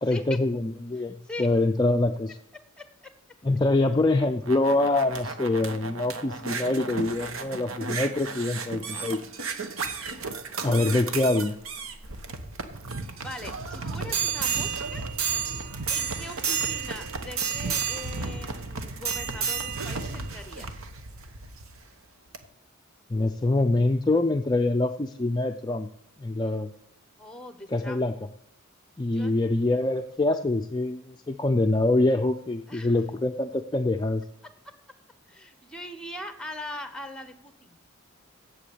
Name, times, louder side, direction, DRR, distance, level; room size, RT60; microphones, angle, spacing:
voice 1, 0.0-2.4 3.4-9.2 10.6-11.5 23.1-25.9 26.2-26.7 27.7-28.1 29.0-34.2, left 2 dB, 20° left, 5 dB, 0.4 m, -25 dB
voice 2, 1.0-1.5 2.8-3.1 11.1-11.4 13.2-15.0 15.9-20.8 27.2-28.0 29.1-29.4 32.7-32.9 35.3-37.8, left 1 dB, 5° left, 8 dB, 1.0 m, -41 dB
sound 1, 4.2-21.8 22.3-22.4, right 5 dB, 75° right, 1.0 m, -32 dB
8.0 x 7.8 x 8.5 m, 0.70 s
head